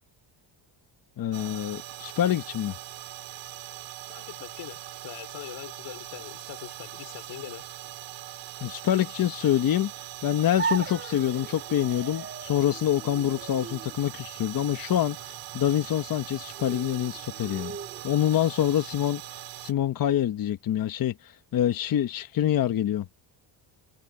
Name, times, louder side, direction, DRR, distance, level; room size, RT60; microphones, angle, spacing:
voice 1, 1.2-2.7 8.6-9.9 10.2-17.8 18.0-23.1, left 11 dB, 45° left, 1.1 m, -26 dB
sound 1, 1.3-19.7, right 14 dB, 70° right, 3.0 m, -41 dB
voice 2, 4.1-7.6, left 15 dB, 85° left, 4.7 m, -42 dB
sound 2, 10.6-18.5, right 5 dB, 25° right, 4.6 m, -38 dB
cardioid pair, 150°, 46 cm